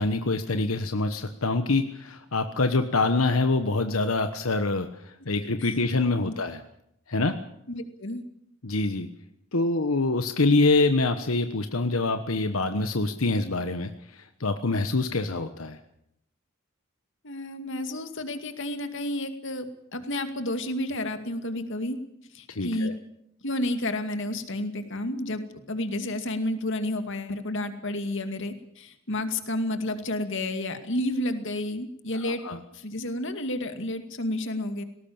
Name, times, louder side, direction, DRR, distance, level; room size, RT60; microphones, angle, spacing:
voice 1, 0.0-6.6 7.1-7.4 8.6-9.1 9.5-15.8 22.5-22.9 32.2-32.6, left 3 dB, 90° left, 8 dB, 1.2 m, -25 dB
voice 2, 7.7-8.2 17.2-22.0 22.3-22.9 23.4-32.4 32.7-34.8, left 1 dB, 65° left, 8 dB, 2.4 m, -31 dB
19.5 x 18.0 x 8.8 m, 0.76 s
head